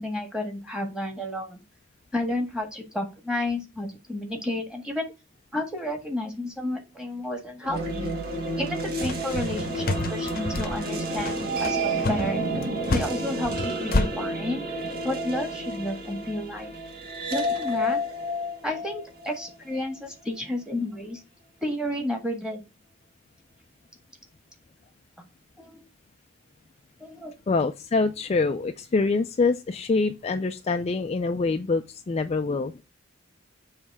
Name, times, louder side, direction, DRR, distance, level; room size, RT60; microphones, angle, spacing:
voice 1, 0.0-1.6 2.1-5.1 5.5-8.1 8.6-12.4 12.9-14.6 15.0-16.7 17.3-18.0 18.6-21.2 21.6-22.6 25.6-25.8 27.0-27.3, left 1 dB, 5° right, 1.5 m, -31 dB
sound 1, 7.6-19.8, right 1 dB, 50° right, 1.6 m, -30 dB
sound 2, 9.0-14.1, left 2 dB, 45° left, 0.8 m, -29 dB
voice 2, 27.5-32.8, left 3 dB, 30° left, 0.4 m, -25 dB
7.2 x 3.2 x 4.7 m
head